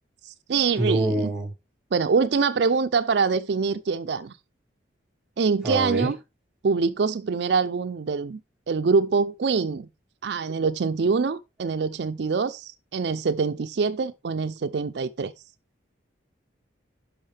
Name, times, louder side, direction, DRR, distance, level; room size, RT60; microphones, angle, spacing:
voice 1, 0.2-1.3 1.9-4.3 5.4-6.2 6.6-8.4 8.7-9.9 10.2-15.3, right 5 dB, 60° right, 0.4 m, -24 dB
voice 2, 0.8-1.5 5.6-6.1, right 1 dB, 5° right, 2.1 m, -25 dB
11.0 x 5.6 x 3.3 m
head